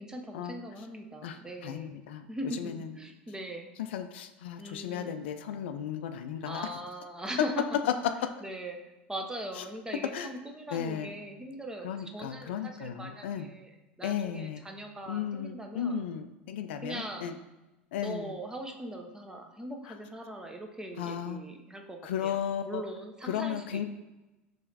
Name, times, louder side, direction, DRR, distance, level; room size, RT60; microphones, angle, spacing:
voice 1, 0.0-1.9 2.3-3.7 4.6-5.2 6.4-7.9 8.4-8.8 9.1-16.0 16.8-17.4 18.0-22.4 22.6-23.9, right 1 dB, 10° right, 3 dB, 0.7 m, -40 dB
voice 2, 1.2-2.3 2.6-2.9 3.8-6.7 9.6-9.7 10.1-10.3 10.7-11.1 11.8-13.5 14.0-14.6 15.1-17.3 17.9-18.3 19.9-20.0 21.0-21.4 22.0-22.8 23.3-23.8, left 8 dB, 70° left, 8 dB, 0.3 m, -35 dB
5.5 x 3.1 x 2.7 m, 1.0 s
hypercardioid pair, 80°, 6 cm